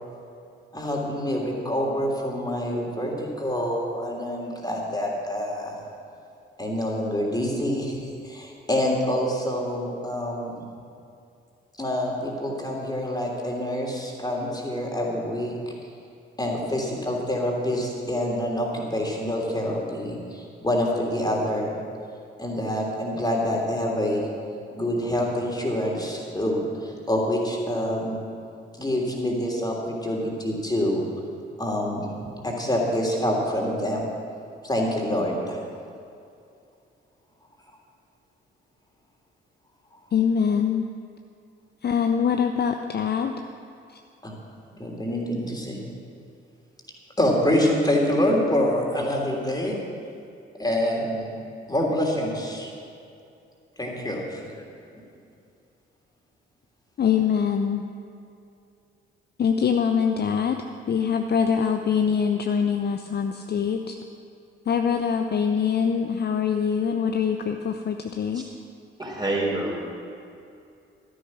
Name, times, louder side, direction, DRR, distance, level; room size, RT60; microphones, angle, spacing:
voice 1, 0.7-5.8 6.6-10.5 11.8-15.5 16.4-21.7 22.4-24.3 24.7-28.2 28.8-31.1 31.6-34.1 34.6-35.6 44.2-44.3 44.8-45.9 47.2-49.7 50.6-51.4 51.7-52.7 53.8-54.6, left 1 dB, 15° left, -1 dB, 3.2 m, -26 dB
voice 2, 40.1-40.9 41.8-43.4 43.9-44.0 57.0-57.8 59.4-64.0 64.7-68.5, left 7 dB, 35° left, 5 dB, 0.7 m, -24 dB
voice 3, 69.0-69.8, right 2 dB, 15° right, -2 dB, 3.7 m, -27 dB
13.0 x 10.5 x 6.1 m, 2.5 s
figure-of-eight pair, 40°, 30 cm